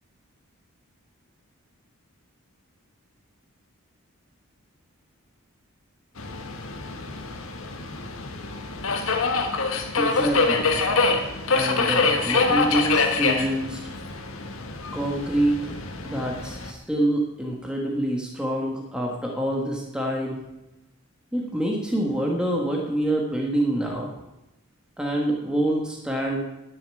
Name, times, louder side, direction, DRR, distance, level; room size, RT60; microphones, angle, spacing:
Subway metro underground, 6.2-16.7, left 4 dB, 65° left, 1.4 m, -25 dB
voice 1, 10.0-10.7 11.5-13.8 14.9-15.7 16.0-20.4 21.3-24.1 25.0-26.4, right 1 dB, 5° right, -1 dB, 1.4 m, -26 dB
11.0 x 7.1 x 8.9 m, 0.94 s
head